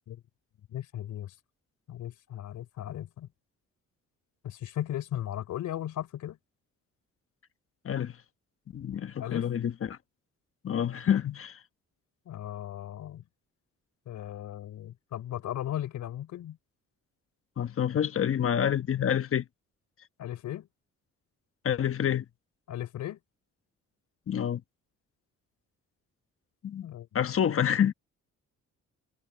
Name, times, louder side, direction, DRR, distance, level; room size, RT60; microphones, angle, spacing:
voice 1, 0.7-1.3 1.9-3.3 4.4-6.4 9.2-9.5 12.3-13.2 14.1-16.6 20.2-20.7 22.7-23.2 26.8-27.1, left 12 dB, 75° left, 3.7 m, -36 dB
voice 2, 8.7-10.0 10.6-11.5 17.6-19.4 21.6-22.2 24.3-24.6 26.6-26.9 27.1-27.9, left 9 dB, 45° left, 1.2 m, -27 dB
cardioid pair, 90°, 30 cm